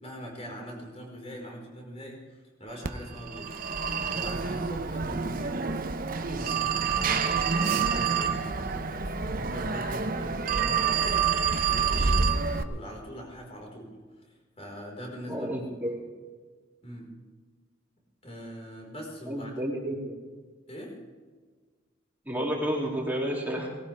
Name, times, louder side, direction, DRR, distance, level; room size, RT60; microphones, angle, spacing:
voice 1, 0.0-5.6 6.1-12.3 12.6-13.9 14.3-15.5 16.8-17.1 18.2-19.5 20.7-21.0, equal, 35° left, -1 dB, 4.7 m, -42 dB
Telephone, 2.8-12.6, right 5 dB, 45° right, 0.9 m, -27 dB
voice 2, 15.2-16.0 19.3-20.1 22.2-23.7, equal, 10° right, -3 dB, 2.9 m, -31 dB
19.5 x 17.5 x 3.5 m, 1.5 s
head